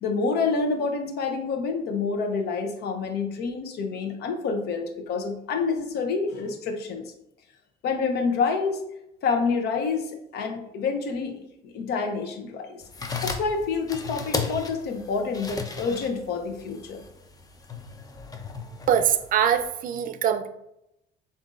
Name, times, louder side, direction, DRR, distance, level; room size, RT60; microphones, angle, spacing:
voice 1, 0.0-7.1 7.8-8.8 9.2-12.8 13.2-17.0, left 4 dB, 75° left, 5 dB, 0.8 m, -28 dB
sound 1, 12.8-19.7, left 4 dB, 20° left, 0.5 m, -35 dB
voice 2, 18.9-20.5, right 9 dB, 55° right, 10 dB, 0.4 m, -23 dB
7.1 x 2.6 x 2.5 m, 0.83 s
cardioid pair, 110°, 17 cm